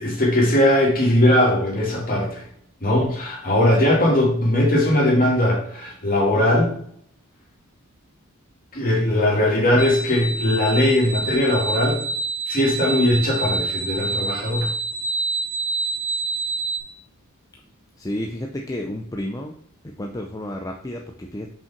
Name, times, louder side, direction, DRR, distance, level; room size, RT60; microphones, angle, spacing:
voice 1, 0.0-2.4 2.8-6.7 8.7-12.0 12.5-14.7, left 1 dB, 40° left, -3 dB, 2.8 m, -19 dB
sound 1, 9.8-16.8, right 3 dB, 35° right, 2.2 m, -27 dB
voice 2, 18.0-19.6 19.8-21.5, left 1 dB, 15° left, 1 dB, 0.6 m, -31 dB
5.6 x 5.5 x 5.2 m, 0.64 s
head